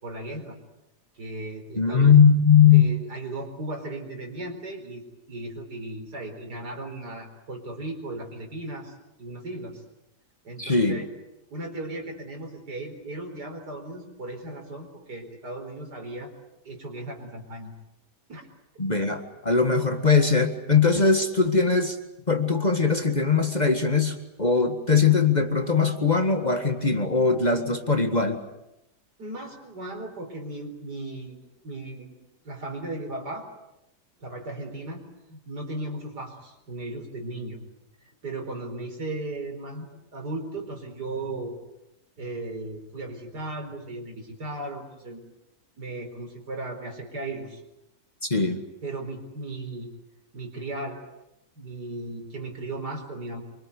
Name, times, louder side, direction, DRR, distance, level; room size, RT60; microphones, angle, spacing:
voice 1, 0.0-0.6 1.2-2.1 2.7-5.0 5.3-8.9 9.2-9.8 10.4-11.1 11.5-16.3 16.6-17.7 18.3-18.5 29.2-31.4 31.6-32.2 32.4-33.5 34.2-35.0 35.3-37.6 38.2-41.6 42.2-45.2 45.8-47.6 48.8-49.9 50.3-51.0 51.5-53.4, right 2 dB, 75° right, 4 dB, 5.0 m, -36 dB
voice 2, 1.8-2.9 10.6-11.0 18.8-22.0 22.3-28.4 48.3-48.6, left 5 dB, 25° left, 5 dB, 1.8 m, -20 dB
25.5 x 24.0 x 8.3 m, 0.89 s
omnidirectional pair, 1.8 m